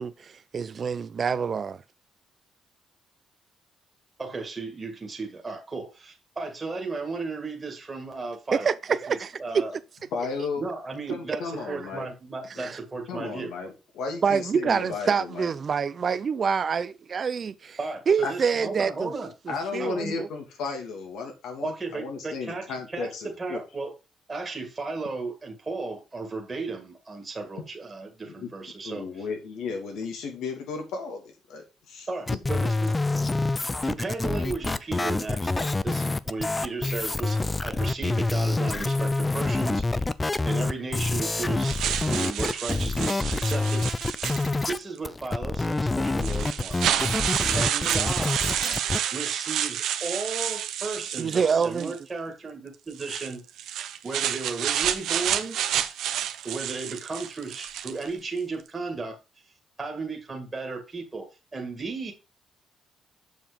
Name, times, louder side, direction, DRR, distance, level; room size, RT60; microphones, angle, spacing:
voice 1, 0.0-1.8 8.5-9.6 12.6-12.8 14.2-17.8 18.1-19.1 19.5-20.3 51.2-51.9, right 6 dB, 45° right, 0.5 m, -26 dB
voice 2, 4.2-9.7 10.6-13.5 17.8-19.3 19.8-20.1 21.6-23.9 24.3-29.1 32.1-33.0 33.8-40.1 40.4-43.9 44.7-46.8 47.5-48.4 49.1-53.4 54.0-55.6 56.4-59.2 59.8-62.1, right 3 dB, 25° right, 2.0 m, -35 dB
voice 3, 10.1-10.7 11.1-12.1 13.1-15.5 18.2-18.3 19.5-23.6 28.2-28.5 28.8-32.1, left 4 dB, 85° left, 2.7 m, -34 dB
sound 1, 32.3-44.8 45.0-49.0, left 2 dB, 20° left, 0.5 m, -27 dB
sound 2, 41.6-44.8 45.6-45.7 46.2-52.0 52.9-58.1, right 10 dB, 80° right, 0.8 m, -29 dB
7.2 x 5.7 x 5.1 m
cardioid pair, 90°, 0 cm